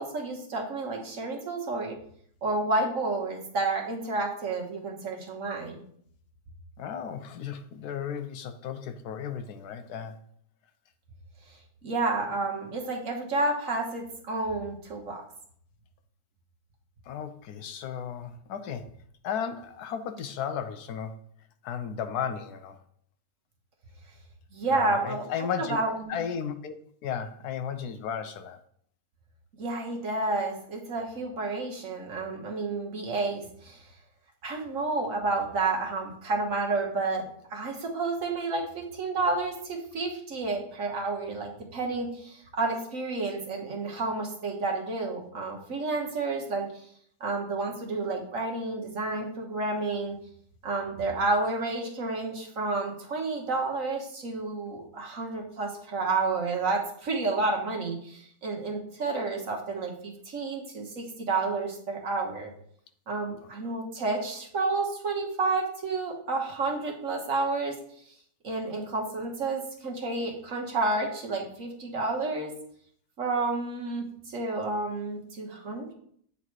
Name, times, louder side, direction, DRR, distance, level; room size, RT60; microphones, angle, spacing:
voice 1, 0.0-2.0 2.4-5.8 11.8-15.2 24.5-25.2 25.6-26.1 29.6-33.8 34.4-37.2 37.5-46.8 47.2-50.2 50.6-62.5 63.1-67.7 68.4-72.5 73.2-75.9, right 3 dB, 55° right, 0 dB, 1.6 m, -30 dB
voice 2, 6.8-10.2 17.0-19.0 19.2-21.3 21.6-22.8 24.7-25.8 26.1-26.8 27.0-28.6 63.4-63.5, left 7 dB, 80° left, 9 dB, 1.1 m, -34 dB
8.5 x 4.0 x 4.6 m, 0.64 s
omnidirectional pair, 1.7 m